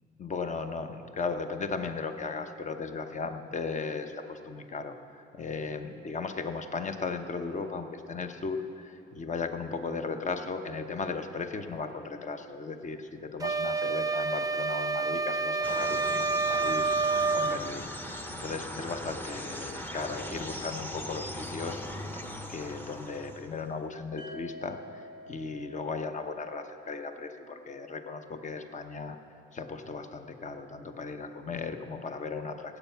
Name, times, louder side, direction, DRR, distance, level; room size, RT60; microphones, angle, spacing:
voice 1, 0.0-21.8 22.1-29.2 29.5-32.8, left 4 dB, 40° left, 7 dB, 0.9 m, -36 dB
sound 1, 13.4-17.6, right 4 dB, 20° right, 0.4 m, -28 dB
sound 2, 15.6-23.7, equal, 10° left, 0.8 m, -40 dB
sound 3, 24.2-28.1, left 2 dB, 70° left, 1.6 m, -49 dB
17.0 x 8.2 x 5.8 m, 2.6 s
cardioid pair, 90°, 20 cm